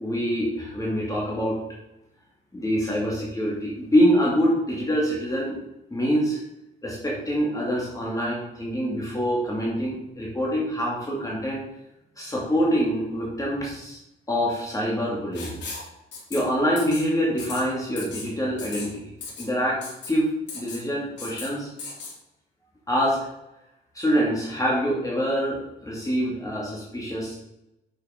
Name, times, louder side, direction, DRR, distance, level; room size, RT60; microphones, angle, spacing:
voice 1, 0.0-1.6 2.5-5.6 5.9-6.4 6.8-11.6 12.2-14.0 14.3-15.6 16.3-19.8 20.1-21.7 22.9-23.2 23.9-27.4, equal, 15° left, -5 dB, 2.7 m, -25 dB
Writing, 15.3-15.9 16.1-16.4 16.8-17.0 17.4-17.6 18.0-18.3 18.6-18.9 19.2-19.5 19.8-20.1 20.5-20.8 21.2-21.5 21.8-22.1, left 4 dB, 60° left, 3.4 m, -36 dB
7.2 x 6.6 x 5.3 m, 0.89 s
cardioid pair, 90°, 20 cm